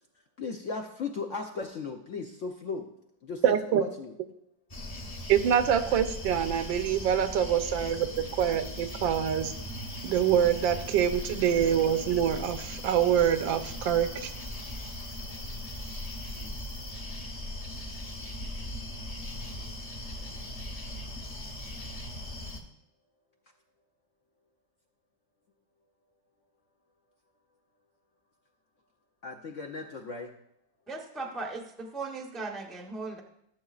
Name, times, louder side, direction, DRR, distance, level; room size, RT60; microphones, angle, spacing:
voice 1, 0.4-2.9 3.2-4.1 16.3-16.6 29.2-30.3, left 4 dB, 65° left, 3 dB, 0.7 m, -36 dB
voice 2, 3.4-3.8 5.3-9.5 10.0-14.3, right 9 dB, 90° right, 9 dB, 1.4 m, -25 dB
sound 1, 4.7-22.6, left 1 dB, 30° left, 0.7 m, -39 dB
voice 3, 30.9-33.2, right 3 dB, ahead, 2 dB, 0.4 m, -37 dB
15.5 x 7.5 x 2.4 m, 0.77 s
omnidirectional pair, 2.0 m